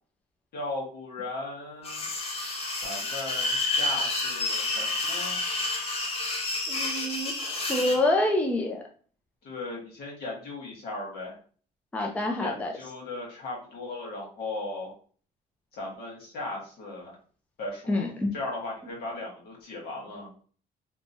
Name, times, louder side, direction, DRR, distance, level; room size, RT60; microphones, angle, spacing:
voice 1, 0.5-2.0 2.8-5.4 7.7-7.8 9.4-11.4 12.4-14.9 15.7-17.1 17.6-20.3, left 2 dB, 70° left, -2 dB, 1.4 m, -37 dB
sound 1, 1.8-8.0, left 2 dB, 35° left, 0.8 m, -29 dB
voice 2, 6.7-8.8 11.9-12.7 17.9-18.3, left 1 dB, 10° left, 1 dB, 0.4 m, -27 dB
2.9 x 2.2 x 2.7 m, 0.42 s
cardioid pair, 110°, 17 cm